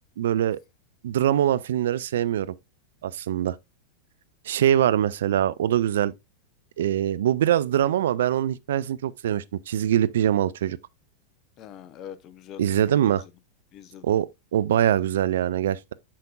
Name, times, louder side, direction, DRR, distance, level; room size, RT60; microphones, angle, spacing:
voice 1, 0.2-0.6 1.0-2.5 3.0-3.6 4.5-6.1 6.8-10.8 12.6-13.2 14.0-15.9, right 10 dB, 60° right, 0.4 m, -23 dB
voice 2, 11.6-13.2 13.7-14.1, left 10 dB, 35° left, 0.7 m, -43 dB
8.5 x 5.8 x 2.3 m
figure-of-eight pair, 90°, 0 cm